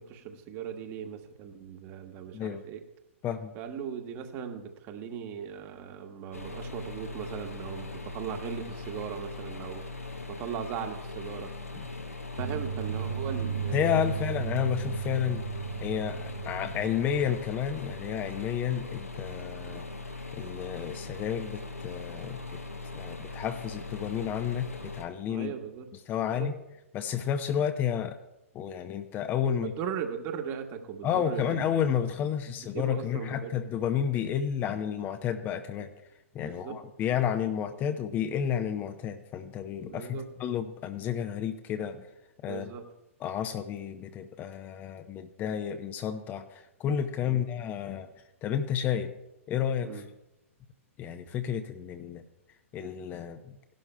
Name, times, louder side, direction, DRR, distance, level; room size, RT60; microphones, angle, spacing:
voice 1, 0.0-2.8 3.5-11.5 12.4-14.1 19.7-19.8 25.3-25.9 26.2-26.5 29.6-31.7 32.7-33.6 36.4-36.8 39.8-40.2 42.4-42.8 47.3-47.4 49.8-50.1, right 7 dB, 35° right, 4 dB, 1.5 m, -38 dB
sound 1, 6.3-25.0, left 3 dB, 85° left, 1.2 m, -40 dB
sound 2, 12.4-17.4, right 8 dB, 75° right, 1.9 m, -35 dB
voice 2, 13.7-15.4 15.8-19.8 20.3-22.4 22.9-25.5 26.1-26.6 26.9-28.2 28.5-29.7 31.0-35.9 36.3-42.1 42.4-42.7 43.2-48.1 48.4-49.1 49.5-50.0 51.0-52.2 52.7-53.6, left 9 dB, 25° left, 8 dB, 0.7 m, -31 dB
17.5 x 11.5 x 2.3 m, 0.92 s
figure-of-eight pair, 110°, 8 cm